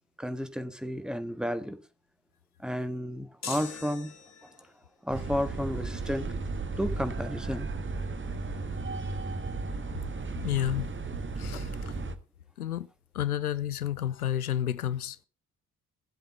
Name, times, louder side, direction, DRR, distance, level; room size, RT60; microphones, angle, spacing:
voice 1, 0.2-1.8 2.6-4.1 5.0-6.3 6.8-7.7, equal, ahead, 1.6 m, -32 dB
sound 1, 3.4-4.7, left 5 dB, 35° left, 2.3 m, -41 dB
sound 2, 5.1-12.1, right 3 dB, 25° right, 1.6 m, -35 dB
voice 2, 10.4-10.9 11.4-12.0 12.6-12.9 13.1-15.2, left 11 dB, 85° left, 0.5 m, -31 dB
16.0 x 7.8 x 5.2 m
figure-of-eight pair, 45°, 43 cm